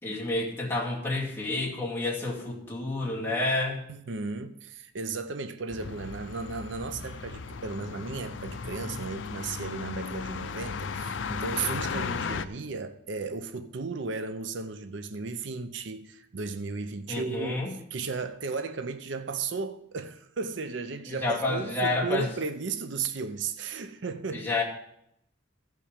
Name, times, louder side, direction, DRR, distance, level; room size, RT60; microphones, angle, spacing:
voice 1, 0.0-3.8 17.1-17.7 21.1-22.3 24.3-24.6, left 2 dB, 10° left, 2.2 m, -29 dB
voice 2, 3.9-24.5, right 4 dB, 70° right, 0.6 m, -35 dB
sound 1, 5.7-12.5, left 5 dB, 70° left, 0.5 m, -36 dB
15.5 x 5.6 x 5.1 m
head